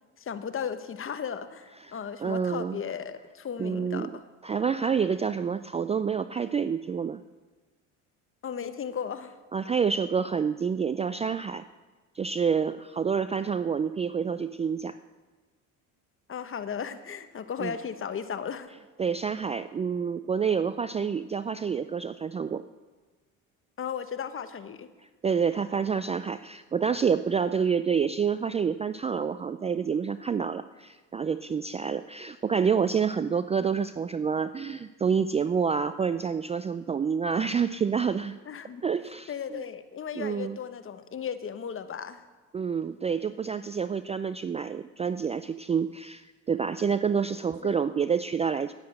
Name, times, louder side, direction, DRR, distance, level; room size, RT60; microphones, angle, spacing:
voice 1, 0.2-4.2 8.4-9.3 16.3-18.7 23.8-24.9 38.5-38.8 39.3-42.2 47.6-47.8, left 7 dB, 35° left, 11 dB, 1.1 m, -35 dB
voice 2, 1.8-2.8 3.6-4.1 4.4-7.2 9.5-11.7 12.1-14.9 17.6-17.7 19.0-22.6 25.2-38.4 38.8-39.6 40.1-40.6 42.5-48.7, right 6 dB, 20° right, 13 dB, 0.3 m, -28 dB
10.5 x 10.0 x 7.7 m, 1.3 s
supercardioid pair, 80°, 37 cm